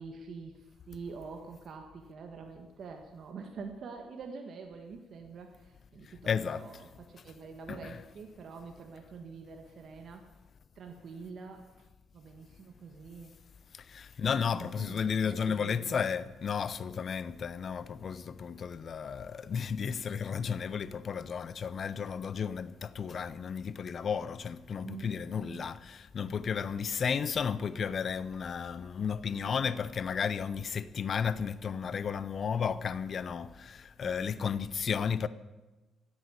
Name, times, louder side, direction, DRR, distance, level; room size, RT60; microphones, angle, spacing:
voice 1, 0.0-10.2 10.7-11.7 12.1-13.3 14.2-16.1 24.7-25.6 29.3-29.7 34.0-34.5, right 5 dB, 60° right, 1.6 m, -46 dB
voice 2, 6.3-6.6 7.8-8.0 13.7-35.3, left 6 dB, 50° left, 0.7 m, -33 dB
15.5 x 8.5 x 8.4 m
cardioid pair, 90°, 0 cm